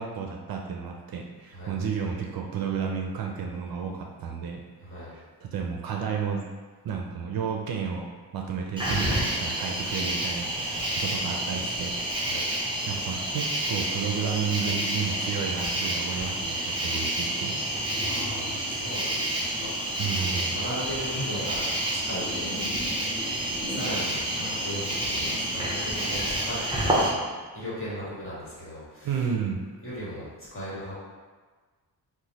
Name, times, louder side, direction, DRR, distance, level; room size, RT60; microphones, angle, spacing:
voice 1, 0.0-4.6 5.1-6.4 6.8-8.1 8.3-11.9 12.9-17.9 20.0-20.6 29.0-29.6, right 6 dB, 60° right, 1 dB, 0.5 m, -32 dB
voice 2, 4.8-5.1 12.2-12.5 17.9-22.6 22.9-23.1 23.7-27.3 27.5-29.3 29.8-31.0, equal, 30° left, -8 dB, 1.3 m, -37 dB
Cricket, 8.8-27.1, right 1 dB, 10° right, 0.7 m, -29 dB
3.0 x 2.2 x 4.0 m, 1.4 s
wide cardioid pair, 130°, 40 cm